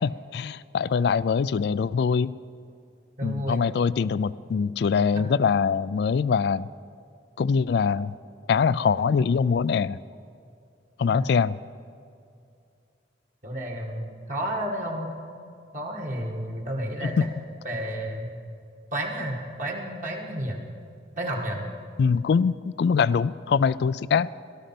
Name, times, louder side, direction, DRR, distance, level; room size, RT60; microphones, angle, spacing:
voice 1, 0.0-2.3 3.2-6.7 7.4-8.1 8.5-10.0 11.0-11.6 17.0-17.3 22.0-24.3, left 6 dB, 65° left, 19 dB, 0.3 m, -23 dB
voice 2, 3.2-3.7 5.1-5.3 11.1-11.3 13.4-15.2 15.7-17.2 17.6-18.3 18.9-20.6 21.2-21.7, right 1 dB, 45° right, -1 dB, 1.8 m, -31 dB
18.5 x 13.0 x 5.9 m, 2.4 s
head